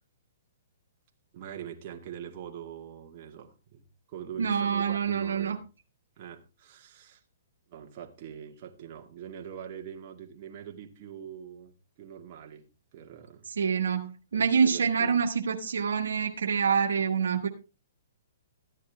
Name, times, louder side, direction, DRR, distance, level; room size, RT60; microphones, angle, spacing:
voice 1, 1.3-5.6 6.2-7.2 7.7-12.7 12.9-13.5 14.3-15.1, right 9 dB, 45° right, 2 dB, 2.0 m, -43 dB
voice 2, 4.4-5.6 13.6-17.5, right 6 dB, 85° right, 4 dB, 1.6 m, -26 dB
14.0 x 9.9 x 3.4 m, 0.31 s
hypercardioid pair, 140°, 0 cm